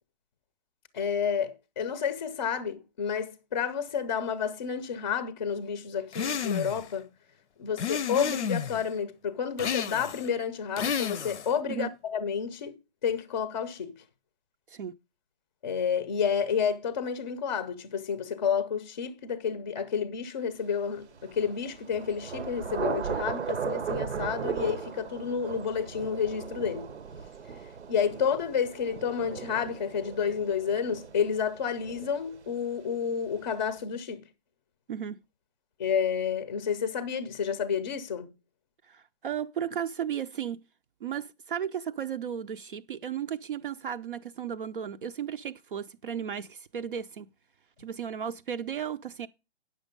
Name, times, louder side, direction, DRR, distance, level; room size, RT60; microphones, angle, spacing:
voice 1, 0.9-7.1 7.6-12.8 13.0-13.9 15.6-26.9 27.9-34.2 35.8-38.3, left 7 dB, 25° left, 0.5 m, -30 dB
sound 1, 6.1-6.9 7.8-8.8 9.6-10.3 10.8-11.5, left 7 dB, 90° left, 0.7 m, -31 dB
Thunder / Rain, 21.1-32.7, right 6 dB, 85° right, 0.8 m, -37 dB
voice 2, 38.9-40.6 41.0-47.3 47.8-49.3, right 8 dB, 50° right, 0.5 m, -35 dB
9.0 x 6.3 x 5.2 m
hypercardioid pair, 155°, 34 cm